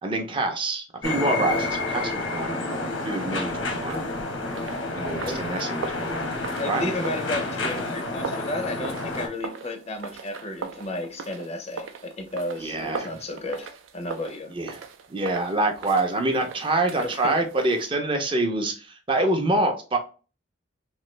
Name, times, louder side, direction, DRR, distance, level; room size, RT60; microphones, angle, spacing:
voice 1, 0.0-2.6 3.0-4.0 4.9-6.2 6.6-6.9 12.6-13.1 14.5-14.8 15.1-20.0, right 2 dB, 25° right, 0.4 m, -26 dB
sound 1, 1.0-9.3, left 2 dB, 90° left, 0.9 m, -29 dB
sound 2, 3.8-17.9, right 6 dB, 85° right, 0.4 m, -40 dB
voice 2, 6.6-14.5 17.0-17.4, left 1 dB, 35° left, 0.4 m, -33 dB
3.1 x 2.5 x 3.1 m
head